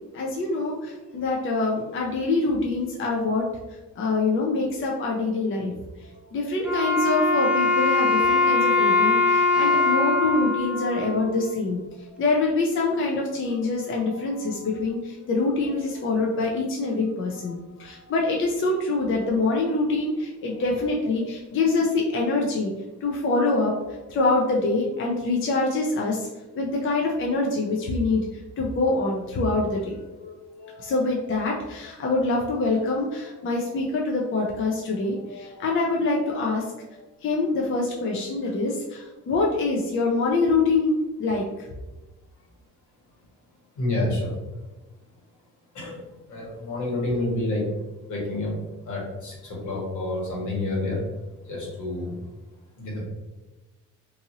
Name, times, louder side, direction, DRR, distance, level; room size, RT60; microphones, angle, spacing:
voice 1, 0.1-3.4 4.0-5.7 6.3-11.8 12.2-22.7 23.0-26.3 26.6-28.2 28.6-40.9 41.2-41.4, left 3 dB, 45° left, -1 dB, 0.5 m, -25 dB
Wind instrument woodwind instrument, 6.6-11.8, left 3 dB, 5° right, 0.4 m, -22 dB
voice 2, 43.7-44.3 45.7-46.0 46.3-47.6 48.1-48.6 48.9-51.0 51.4-52.1 52.8-53.1, left 2 dB, 75° left, -3 dB, 1.4 m, -28 dB
2.7 x 2.6 x 2.8 m, 1.1 s
cardioid pair, 90°, 30 cm